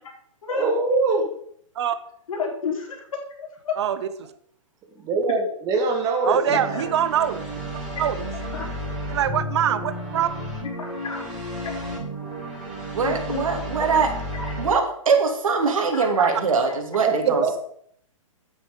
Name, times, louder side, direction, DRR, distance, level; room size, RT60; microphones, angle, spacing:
voice 1, 0.5-1.2 5.0-6.8 17.0-17.6, right 3 dB, 20° right, 3 dB, 2.2 m, -23 dB
voice 2, 2.3-3.0 3.4-3.7 6.7-6.8 7.9-8.1 8.5-8.7 10.8-11.3 11.6-11.7 12.5-12.7 13.0-13.4 14.3-14.5 15.9-16.1 16.6-17.1, left 5 dB, 75° left, 0 dB, 4.6 m, -31 dB
voice 3, 6.2-7.4 8.0-8.3 9.1-10.3, right 9 dB, 55° right, 12 dB, 0.9 m, -23 dB
sound 1, 6.5-14.7, equal, 5° right, 4.5 m, -32 dB
voice 4, 12.9-14.1 14.6-17.6, right 5 dB, 75° right, 4 dB, 2.9 m, -22 dB
9.5 x 8.6 x 5.4 m, 0.65 s
hypercardioid pair, 155°, 17 cm